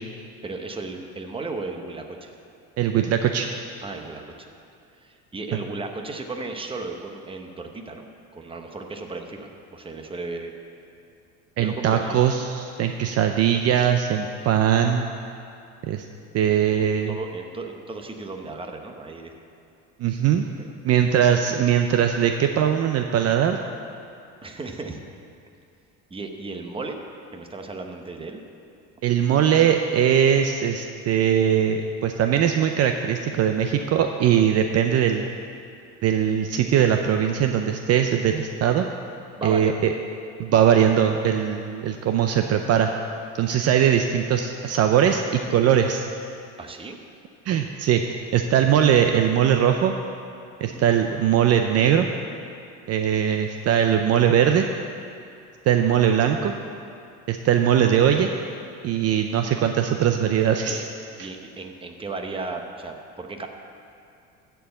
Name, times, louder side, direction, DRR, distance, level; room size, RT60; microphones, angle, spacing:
voice 1, 0.4-2.3 3.8-4.5 5.0-10.5 11.6-12.2 16.8-19.3 24.4-25.0 26.1-27.0 27.3-28.4 39.4-39.9 46.6-47.0 50.7-50.8 60.7-60.8 61.2-63.5, right 3 dB, 15° right, 4 dB, 0.9 m, -35 dB
voice 2, 2.8-3.5 5.5-5.6 11.6-15.1 15.9-16.1 16.3-17.2 20.0-20.5 20.8-23.6 29.0-35.2 36.0-38.9 39.4-39.9 40.4-42.9 43.4-46.1 47.5-48.0 48.3-50.0 50.6-52.1 52.9-54.7 55.7-56.5 57.3-58.3 58.8-60.8 61.2-61.3, right 9 dB, 45° right, 5 dB, 0.6 m, -20 dB
14.0 x 4.7 x 7.8 m, 2.5 s
cardioid pair, 125°, 34 cm